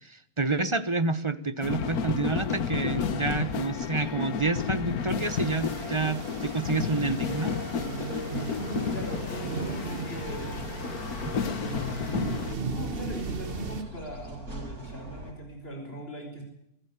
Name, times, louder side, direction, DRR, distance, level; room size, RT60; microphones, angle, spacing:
voice 1, 0.0-7.6 11.2-11.3, right 3 dB, 25° right, 13 dB, 1.0 m, -29 dB
sound 1, 1.6-12.6, left 6 dB, 85° left, 1.7 m, -32 dB
sound 2, 5.2-13.8, right 4 dB, 40° right, 1.4 m, -37 dB
voice 2, 8.5-10.7 11.3-12.1 12.6-16.4, right 1 dB, 40° left, 3 dB, 5.3 m, -39 dB
sound 3, 10.2-15.3, right 1 dB, 85° right, 6.8 m, -43 dB
23.0 x 14.5 x 9.7 m, 0.77 s
omnidirectional pair, 1.5 m